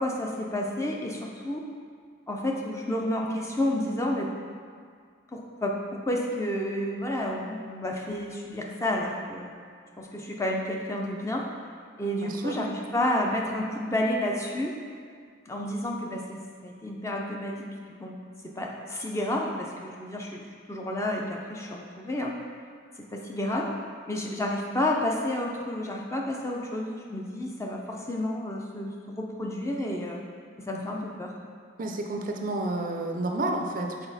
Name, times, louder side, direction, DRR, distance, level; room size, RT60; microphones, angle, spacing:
voice 1, 0.0-1.7 2.3-4.3 5.3-9.5 10.0-11.4 12.0-14.7 15.5-18.2 18.6-20.4 20.7-22.4 23.0-23.7 24.1-30.2 30.7-31.3, left 1 dB, 15° left, -1 dB, 0.5 m, -30 dB
voice 2, 12.2-12.6 31.8-34.1, right 2 dB, 40° right, 2 dB, 0.4 m, -30 dB
5.9 x 4.2 x 4.0 m, 2.1 s
head